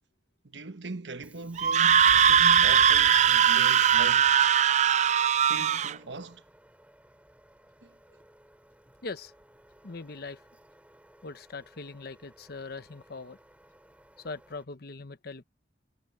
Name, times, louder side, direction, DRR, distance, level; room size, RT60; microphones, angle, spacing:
voice 1, 0.4-4.4 5.4-6.4 7.8-7.9, right 3 dB, 80° right, 1.2 m, -40 dB
Subway metro underground, 1.2-14.6, equal, 10° right, 3.4 m, -52 dB
Screaming, 1.6-5.9, right 8 dB, 40° right, 0.4 m, -20 dB
voice 2, 9.0-9.3 9.8-10.4 11.2-13.4 14.2-15.4, left 3 dB, 60° left, 1.1 m, -41 dB
head